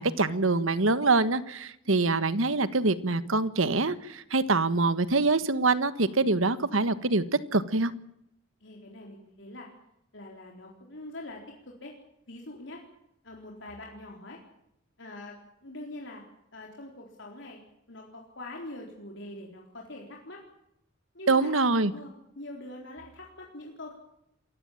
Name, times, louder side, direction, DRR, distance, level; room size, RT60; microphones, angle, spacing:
voice 1, 0.0-7.2 7.5-7.9 21.3-21.9, right 3 dB, 85° right, 13 dB, 1.4 m, -25 dB
voice 2, 8.6-9.7 10.1-12.0 12.3-12.8 13.2-14.4 15.0-16.2 16.5-17.6 17.9-20.4 21.1-21.5 21.9-23.9, left 1 dB, 65° left, 0 dB, 4.0 m, -44 dB
27.5 x 15.5 x 8.8 m, 0.79 s
head